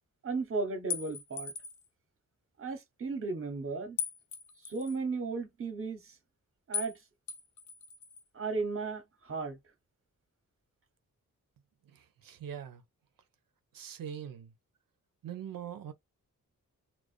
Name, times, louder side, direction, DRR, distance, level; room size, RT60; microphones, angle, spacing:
voice 1, 0.2-1.5 2.6-4.0 4.6-6.1 6.7-7.0 8.3-9.6, right 4 dB, 40° right, 0.8 m, -35 dB
sound 1, 0.9-1.9 4.0-5.0 6.7-7.0 7.3-8.2, left 7 dB, 60° left, 0.5 m, -38 dB
voice 2, 11.9-12.8 13.7-14.5 15.2-15.9, right 9 dB, 80° right, 0.6 m, -42 dB
2.4 x 2.2 x 2.4 m
wide cardioid pair, 95°, 33 cm